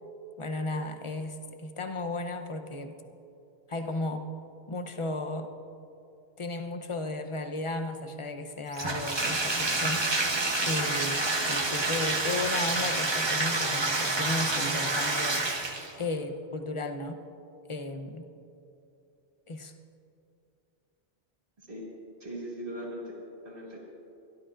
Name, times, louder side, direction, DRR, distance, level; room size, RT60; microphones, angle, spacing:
voice 1, 0.4-2.9 3.7-4.2 4.7-5.5 6.4-10.0 10.7-15.4 16.0-17.2 17.7-18.3 19.5-19.7, left 2 dB, 30° left, 6 dB, 0.7 m, -34 dB
Bathtub (filling or washing), 8.7-16.0, right 2 dB, 25° right, 0.9 m, -28 dB
voice 2, 22.2-23.8, equal, 55° right, -4 dB, 2.5 m, -40 dB
24.5 x 12.5 x 2.5 m, 2.7 s
omnidirectional pair, 1.1 m